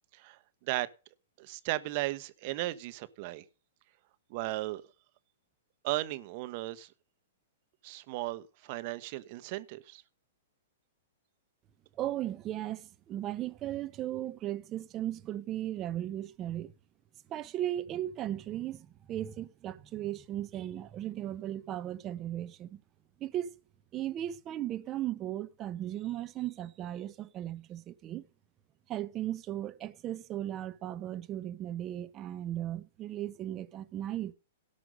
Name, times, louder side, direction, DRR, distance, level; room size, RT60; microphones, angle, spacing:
voice 1, 0.1-0.9 1.4-3.4 4.3-4.8 5.8-6.9 7.8-10.0, right 18 dB, 50° right, 1.3 m, -36 dB
voice 2, 12.0-16.7 17.3-22.8 23.2-23.5 23.9-28.3 28.9-34.3, right 12 dB, 30° right, 1.2 m, -36 dB
17.5 x 5.9 x 5.3 m
hypercardioid pair, 120°, 0 cm